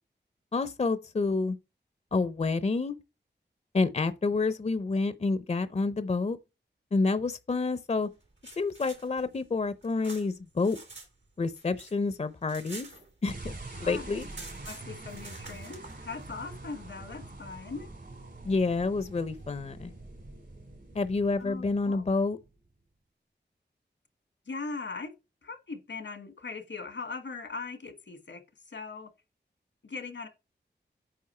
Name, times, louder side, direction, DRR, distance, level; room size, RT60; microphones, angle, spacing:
voice 1, 0.5-1.6 2.1-3.0 3.7-6.4 6.9-8.1 8.6-10.8 11.4-12.9 13.2-13.5 13.8-14.3 18.4-19.9 20.9-22.4, left 3 dB, 40° left, 0.6 m, -28 dB
sound 1, 8.2-11.1 11.4-13.5 13.8-13.9 14.1-15.9, right 3 dB, 85° right, 3.0 m, -48 dB
sound 2, 13.3-22.7, right 2 dB, 65° right, 3.2 m, -45 dB
voice 2, 13.5-14.2 14.6-17.9 21.4-22.1 24.4-25.1 25.4-29.1 29.8-30.3, left 4 dB, 85° left, 1.5 m, -40 dB
8.6 x 5.1 x 4.3 m
wide cardioid pair, 70°, 19 cm